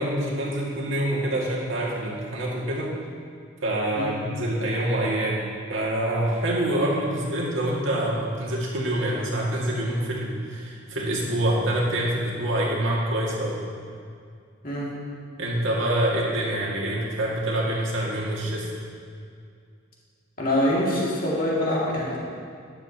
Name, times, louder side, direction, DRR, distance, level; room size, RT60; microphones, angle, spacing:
voice 1, 0.0-2.9 3.6-13.6 15.4-18.7, right 1 dB, 65° right, -4 dB, 2.0 m, -26 dB
voice 2, 14.6-14.9 20.4-22.2, left 1 dB, 45° left, -5 dB, 2.3 m, -24 dB
12.5 x 10.0 x 2.9 m, 2.3 s
head